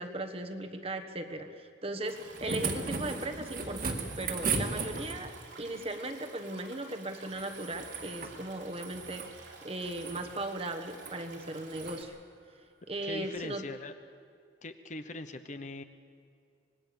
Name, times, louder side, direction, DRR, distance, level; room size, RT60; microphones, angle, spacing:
voice 1, 0.0-12.2 12.9-13.6, right 1 dB, 30° right, 6 dB, 1.3 m, -38 dB
Stream, 2.0-12.0, right 4 dB, 85° right, 3.6 m, -52 dB
sound 1, 2.1-5.4 7.3-8.4 8.7-9.3 9.8-10.3 10.9-11.2 11.7-12.0 13.4-13.5, right 4 dB, 50° right, 2.0 m, -36 dB
voice 2, 13.0-13.9 14.6-15.8, left 2 dB, 40° left, 9 dB, 0.9 m, -41 dB
25.5 x 20.0 x 7.0 m, 2.3 s
head